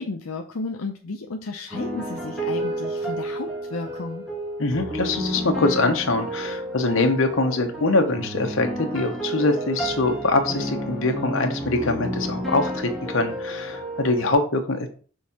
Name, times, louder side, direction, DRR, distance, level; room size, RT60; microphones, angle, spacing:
voice 1, 0.0-4.2, left 3 dB, 85° left, 2 dB, 0.6 m, -33 dB
sound 1, 1.7-14.3, right 1 dB, ahead, 1.4 m, -31 dB
voice 2, 4.6-14.9, left 2 dB, 70° left, 5 dB, 1.0 m, -23 dB
6.3 x 3.6 x 4.3 m, 0.40 s
head